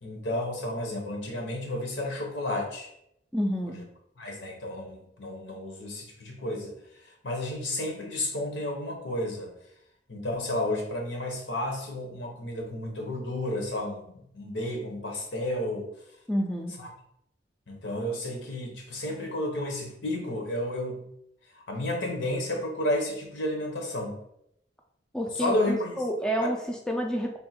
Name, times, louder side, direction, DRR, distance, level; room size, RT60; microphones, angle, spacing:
voice 1, 0.0-2.9 4.2-6.7 7.2-9.5 10.1-15.9 16.8-16.9 17.7-21.0 21.7-24.2 25.4-26.0 26.4-26.5, left 1 dB, 80° left, 1 dB, 1.0 m, -32 dB
voice 2, 3.3-3.8 16.3-16.7 25.1-27.4, equal, 5° left, 1 dB, 0.3 m, -29 dB
3.6 x 2.3 x 4.2 m, 0.75 s
head